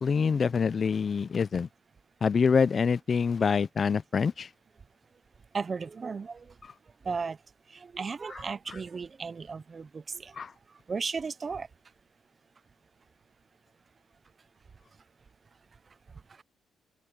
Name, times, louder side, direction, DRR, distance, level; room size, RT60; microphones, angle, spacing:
voice 1, 0.0-1.7 2.2-4.5 10.4-10.5, left 5 dB, 40° left, 0.5 m, -25 dB
voice 2, 5.5-6.4 7.1-7.4 7.8-10.3 10.9-11.7, right 5 dB, 35° right, 0.7 m, -35 dB
cardioid pair, 90°, 0 cm